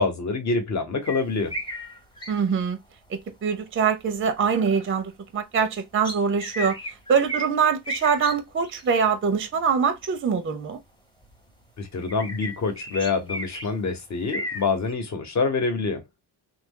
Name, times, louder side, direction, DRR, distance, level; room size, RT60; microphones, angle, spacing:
voice 1, 0.0-1.6 11.8-16.0, left 4 dB, 40° left, 1.1 m, -26 dB
sound 1, 1.0-2.6 4.3-5.0 6.0-7.5 7.8-8.4 8.6-9.0 9.7-9.8 11.2-11.5 12.1-13.9 14.3-14.9, equal, 10° left, 0.9 m, -34 dB
voice 2, 2.3-2.8 3.1-6.8 7.1-10.8, right 6 dB, 30° right, 0.6 m, -24 dB
3.1 x 2.4 x 3.7 m
cardioid pair, 125°, 44 cm